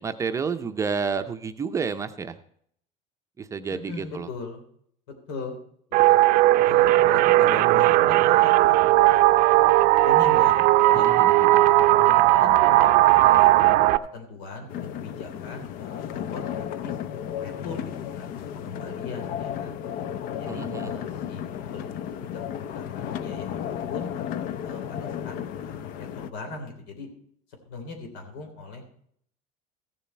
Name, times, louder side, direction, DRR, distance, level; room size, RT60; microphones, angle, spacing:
voice 1, 0.0-2.4 3.4-4.3 10.9-11.6 20.5-20.9, right 5 dB, 20° right, 8 dB, 0.6 m, -30 dB
voice 2, 3.7-4.6 5.3-5.6 5.9-6.2 6.6-9.5 10.0-11.1 11.8-13.5 14.1-17.0 17.4-19.8 20.3-24.1 24.6-27.1 27.6-28.9, left 3 dB, 85° left, 4 dB, 3.5 m, -40 dB
sound 1, 5.9-14.0, right 16 dB, 55° right, 0.6 m, -17 dB
sound 2, 14.7-26.3, left 9 dB, 55° left, 0.7 m, -33 dB
15.0 x 7.3 x 4.4 m, 0.66 s
cardioid pair, 155°, 17 cm